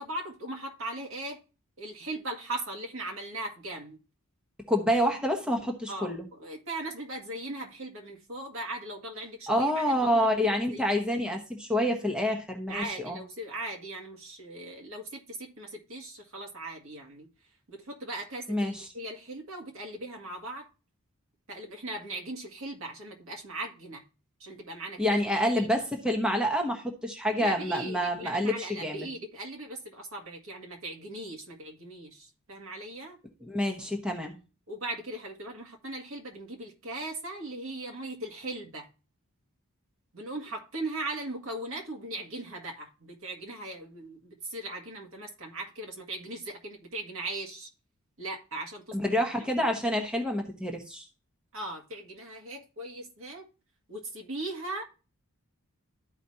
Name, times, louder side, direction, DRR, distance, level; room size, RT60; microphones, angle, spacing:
voice 1, 0.0-1.4 1.8-4.0 5.9-10.3 10.7-11.0 12.7-17.3 17.7-20.7 21.5-24.0 24.4-25.2 25.5-25.7 27.3-33.2 34.7-38.9 40.1-47.7 48.2-49.1 51.5-53.5 53.9-54.8, right 2 dB, 65° right, 2.0 m, -39 dB
voice 2, 4.7-6.3 9.5-13.2 18.5-18.9 25.0-29.1 33.4-34.4 48.9-51.1, equal, 5° right, 1.0 m, -28 dB
13.0 x 5.0 x 2.7 m
head